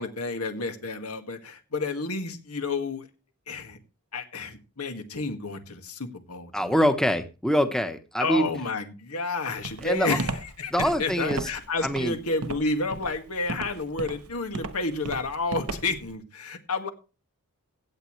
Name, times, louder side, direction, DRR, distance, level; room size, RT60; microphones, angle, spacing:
voice 1, 0.0-3.1 3.5-3.8 4.1-6.7 8.2-10.3 10.6-16.9, left 3 dB, 85° left, 6 dB, 1.9 m, -30 dB
voice 2, 6.5-8.5 9.8-10.2 10.7-11.5 11.8-12.2, equal, 5° left, 8 dB, 1.0 m, -24 dB
Walk footsteps, 9.6-16.1, right 3 dB, 85° right, 1.3 m, -35 dB
16.5 x 9.3 x 3.2 m, 0.31 s
head